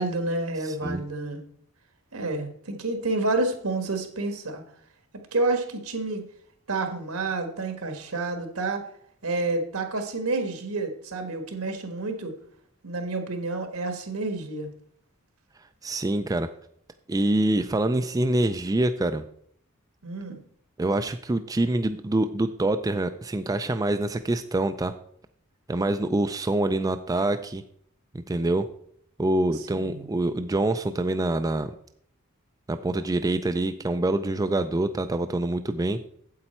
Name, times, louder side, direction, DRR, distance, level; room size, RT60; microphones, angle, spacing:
voice 1, 0.0-1.4 2.1-4.6 5.3-6.2 6.7-8.8 9.2-12.3 12.8-14.7 20.0-20.4 29.5-30.1, right 2 dB, 80° right, 6 dB, 1.5 m, -29 dB
voice 2, 0.6-1.0 15.8-16.5 17.1-19.2 20.8-24.9 25.7-27.6 28.1-28.7 29.2-31.7 32.7-36.2, right 2 dB, 15° right, 8 dB, 0.3 m, -25 dB
8.4 x 7.9 x 4.3 m, 0.65 s
head